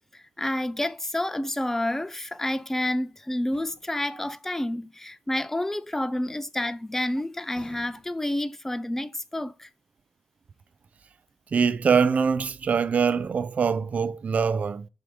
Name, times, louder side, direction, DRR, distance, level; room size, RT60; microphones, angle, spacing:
voice 1, 0.1-9.7, left 1 dB, 10° left, 0.5 m, -29 dB
sound 1, 3.5-4.1 7.5-8.4, left 3 dB, 35° left, 1.3 m, -52 dB
voice 2, 11.5-14.9, right 6 dB, 50° right, 0.4 m, -23 dB
6.0 x 3.5 x 5.0 m
cardioid pair, 75°, 3 cm